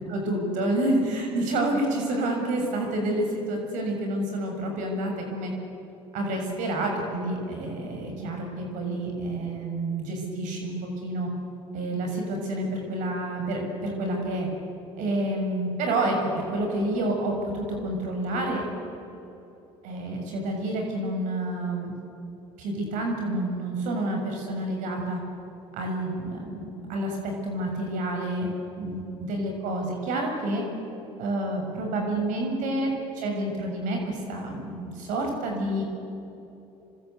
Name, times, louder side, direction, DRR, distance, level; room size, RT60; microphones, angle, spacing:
voice 1, 0.0-5.5 6.1-10.7 11.0-11.3 11.7-14.5 15.0-18.7 19.8-21.9 22.6-25.2 25.7-28.5 28.8-30.6 31.2-35.8, right 1 dB, 70° right, 2 dB, 7.0 m, -29 dB
27.5 x 25.0 x 8.1 m, 2.9 s
supercardioid pair, 80°, 14 cm